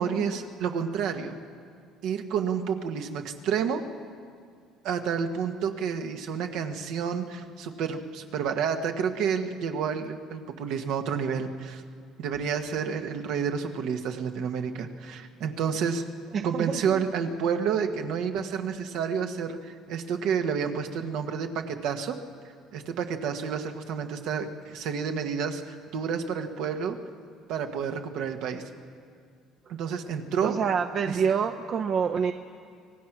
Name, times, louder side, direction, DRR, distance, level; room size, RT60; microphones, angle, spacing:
voice 1, 0.0-1.3 2.0-3.8 4.8-11.8 12.2-16.0 16.4-22.2 22.7-27.0 27.5-28.6 29.7-30.6 31.1-31.2, right 7 dB, 75° right, 6 dB, 1.5 m, -30 dB
voice 2, 16.3-17.0 30.4-32.3, right 6 dB, 50° right, 6 dB, 0.7 m, -27 dB
25.0 x 18.0 x 6.1 m, 2.2 s
cardioid pair, 100°, 0 cm